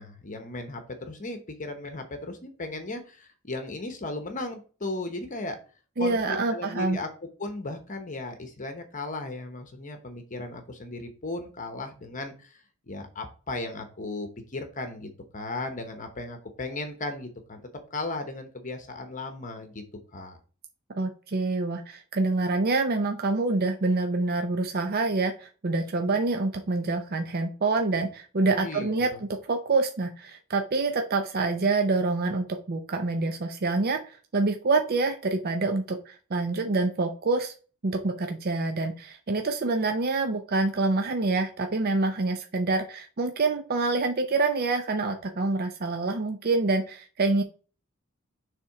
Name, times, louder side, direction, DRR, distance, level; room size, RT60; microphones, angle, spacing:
voice 1, 0.0-5.6 6.0-7.1 7.4-12.6 12.9-17.6 17.9-19.8 20.1-20.4 28.5-29.2, left 2 dB, 35° left, 6 dB, 1.0 m, -36 dB
voice 2, 6.0-7.0 21.0-37.5 37.8-47.4, right 3 dB, 45° right, 5 dB, 0.6 m, -26 dB
6.8 x 3.6 x 4.7 m, 0.37 s
head